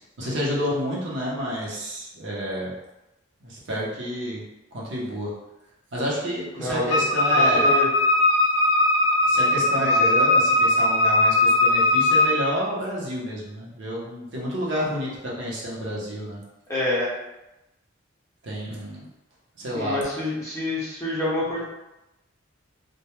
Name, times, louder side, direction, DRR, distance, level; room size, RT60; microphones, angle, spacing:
voice 1, 0.2-2.7 3.4-4.4 4.7-5.3 5.9-7.7 9.3-16.4 18.4-19.1 19.6-20.0, equal, 60° right, -5 dB, 0.6 m, -29 dB
voice 2, 6.6-7.0 7.3-7.9 16.7-17.1 19.7-21.6, left 2 dB, 15° left, -7 dB, 0.6 m, -27 dB
Wind instrument woodwind instrument, 6.9-12.4, left 2 dB, 60° left, 0.5 m, -19 dB
2.2 x 2.1 x 2.9 m, 0.97 s
head